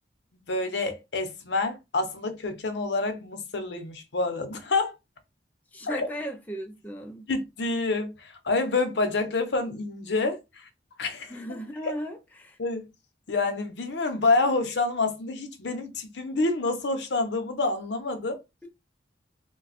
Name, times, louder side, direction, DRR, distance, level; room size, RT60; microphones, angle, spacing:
voice 1, 0.5-4.9 5.8-6.1 7.3-10.7 11.0-11.6 11.8-11.9 12.6-12.8 13.3-18.4, left 3 dB, 75° left, 0.7 m, -28 dB
voice 2, 5.7-7.3 11.3-12.6 18.6-18.7, equal, 10° left, 0.3 m, -36 dB
2.4 x 2.2 x 4.0 m
head